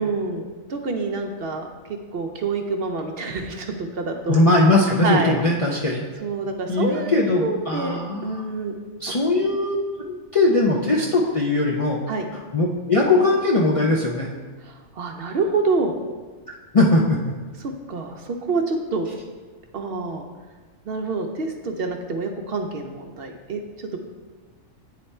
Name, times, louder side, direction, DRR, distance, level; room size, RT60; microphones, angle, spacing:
voice 1, 0.0-1.6 2.1-4.3 5.0-5.4 6.2-8.7 9.1-9.2 12.1-12.2 14.7-15.9 17.6-19.1 19.7-20.3 20.9-23.6 23.9-24.0, right 3 dB, 60° right, 4 dB, 0.7 m, -27 dB
voice 2, 4.3-6.0 6.7-8.4 9.0-9.8 10.1-12.0 12.3-14.3 16.7-17.3, left 2 dB, 50° left, -2 dB, 0.4 m, -20 dB
9.1 x 3.3 x 4.2 m, 1.4 s
omnidirectional pair, 1.3 m